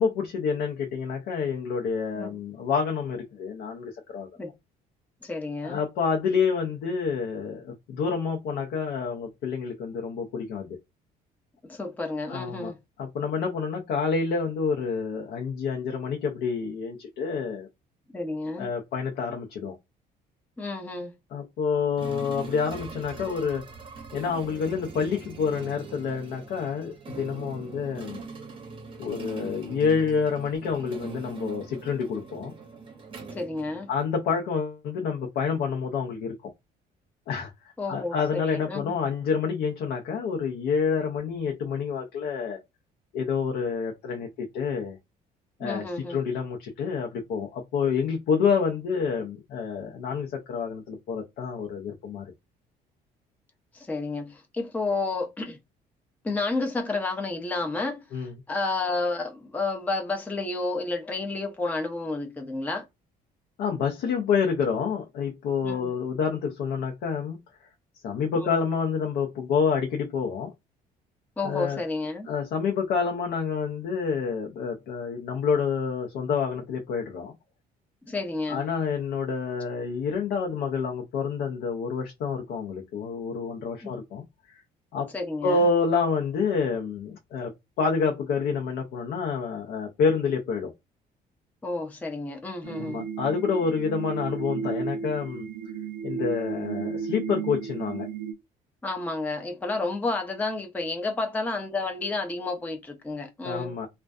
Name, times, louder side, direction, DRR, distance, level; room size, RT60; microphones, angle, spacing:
voice 1, 0.0-4.3 5.6-10.8 12.3-12.7 13.0-17.7 18.6-19.8 21.3-23.6 24.1-28.2 29.0-32.5 33.9-36.5 37.3-42.6 43.1-45.0 45.6-52.3 58.1-58.3 63.6-67.4 68.0-70.5 71.4-71.8 72.3-77.3 78.5-84.6 84.9-85.1 85.4-87.5 87.8-90.7 92.6-95.5 96.0-98.1 103.4-103.9, left 5 dB, 75° left, 0.6 m, -28 dB
voice 2, 5.2-5.8 11.7-12.8 18.1-18.7 20.6-21.1 33.3-33.9 37.8-39.0 45.6-46.2 53.7-55.6 56.2-58.0 58.5-62.8 65.6-65.9 68.4-68.5 71.4-72.3 78.1-78.6 83.8-83.9 85.1-85.6 91.6-93.0 98.8-103.7, left 3 dB, 10° left, 0.4 m, -31 dB
sound 1, 22.0-34.2, right 4 dB, 30° right, 0.7 m, -42 dB
sound 2, 92.6-98.3, right 6 dB, 80° right, 0.5 m, -33 dB
2.5 x 2.2 x 2.3 m
cardioid pair, 110°, 17 cm